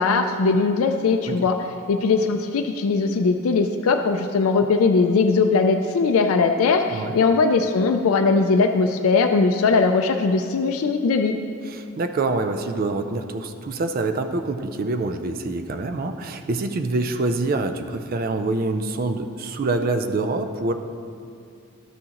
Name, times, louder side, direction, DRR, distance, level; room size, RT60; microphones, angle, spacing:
voice 1, 0.0-1.6 1.9-11.3, left 4 dB, 80° left, 5 dB, 0.4 m, -20 dB
voice 2, 11.7-20.7, right 3 dB, 40° right, 8 dB, 0.4 m, -26 dB
12.5 x 6.2 x 3.0 m, 2.4 s
head